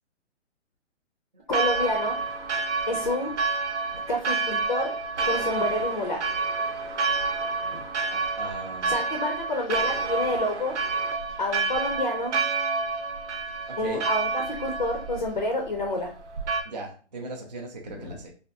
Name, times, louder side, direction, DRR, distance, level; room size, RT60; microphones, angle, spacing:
voice 1, 1.5-2.2 2.9-3.3 3.9-5.0 5.3-6.2 7.7-7.8 8.9-10.7 11.4-12.4 13.8-16.1 17.9-18.1, left 1 dB, 40° left, 3 dB, 0.4 m, -28 dB
Church bell, 1.5-16.6, right 4 dB, 75° right, 0.8 m, -29 dB
voice 2, 8.1-9.0 13.7-14.0 16.7-18.3, right 3 dB, 40° right, 1 dB, 0.4 m, -38 dB
3.4 x 2.3 x 2.6 m, 0.39 s
hypercardioid pair, 175°, 35 cm